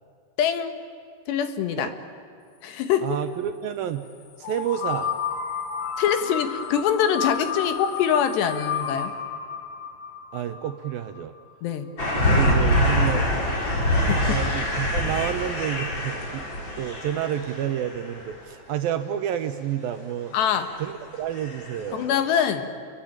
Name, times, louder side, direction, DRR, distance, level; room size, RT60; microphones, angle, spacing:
voice 1, 0.4-0.7 1.3-1.9 2.6-3.2 6.0-9.1 11.6-11.9 12.3-12.5 12.9-13.0 14.0-14.4 20.3-20.7 21.9-22.7, left 8 dB, 75° left, 8 dB, 3.7 m, -24 dB
voice 2, 3.0-4.1 4.4-5.1 10.3-11.3 12.1-13.3 14.2-16.4 16.8-20.4 20.8-22.1, right 10 dB, 75° right, 8 dB, 2.3 m, -29 dB
sound 1, 4.4-11.2, left 7 dB, 55° left, 2.5 m, -31 dB
sound 2, 12.0-18.3 20.4-20.9 21.3-21.9 22.1-22.2, left 1 dB, 25° left, 5.0 m, -24 dB
29.0 x 22.5 x 8.9 m, 2.4 s
omnidirectional pair, 5.0 m